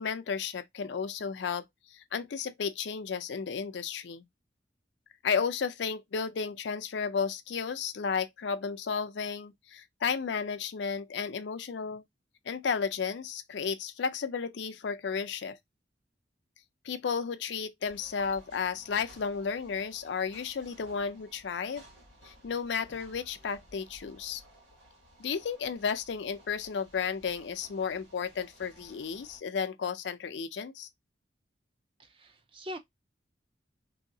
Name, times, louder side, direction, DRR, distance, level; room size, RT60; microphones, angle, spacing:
voice 1, 0.0-1.6 1.9-4.2 5.2-12.0 12.5-15.6 16.8-21.8 22.2-24.4 25.2-30.9, left 6 dB, 75° left, 0.4 m, -33 dB
sound 1, 17.8-29.4, equal, 90° right, 1.7 m, -57 dB
voice 2, 32.0-32.8, equal, 30° right, 0.5 m, -42 dB
3.0 x 2.8 x 2.6 m
head